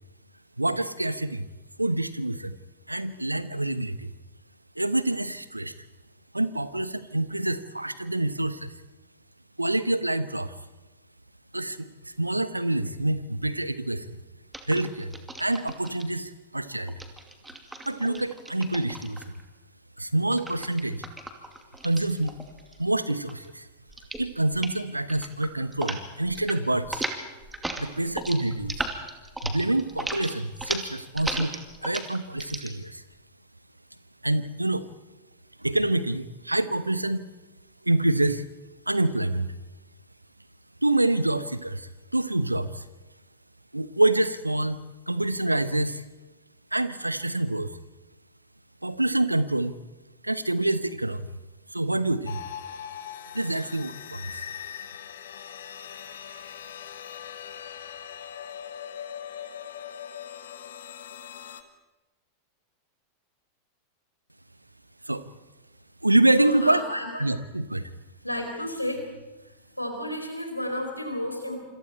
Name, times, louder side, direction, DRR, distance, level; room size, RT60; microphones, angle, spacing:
voice 1, 0.6-1.5 1.8-2.6 2.9-4.1 4.8-5.7 6.3-8.7 9.6-10.5 11.5-14.2 14.7-17.0 17.8-19.2 20.0-21.1 21.8-22.3 22.8-23.7 24.2-27.1 27.8-28.8 29.4-33.0 34.2-34.9 35.6-37.3 37.8-38.5 38.9-39.5 40.8-42.8 43.7-44.8 45.1-46.0 46.7-47.7 48.8-49.7 50.2-51.3 51.7-52.4 53.3-54.3 65.1-65.2 66.0-66.8 67.2-67.8, right 1 dB, 85° right, 14 dB, 1.0 m, -26 dB
sound 1, 14.5-16.0 16.9-19.4 20.3-22.8 23.1-23.5 23.9-24.3 24.5-24.8 25.1-26.0 26.3-26.6 26.8-32.7, right 2 dB, 5° right, 2.5 m, -36 dB
sound 2, 52.3-61.6, left 9 dB, 60° left, 1.7 m, -40 dB
voice 2, 66.4-67.3 68.2-69.1 69.8-71.6, left 1 dB, 90° left, 4 dB, 4.4 m, -31 dB
26.5 x 26.5 x 4.4 m, 1.1 s
figure-of-eight pair, 90°, 0 cm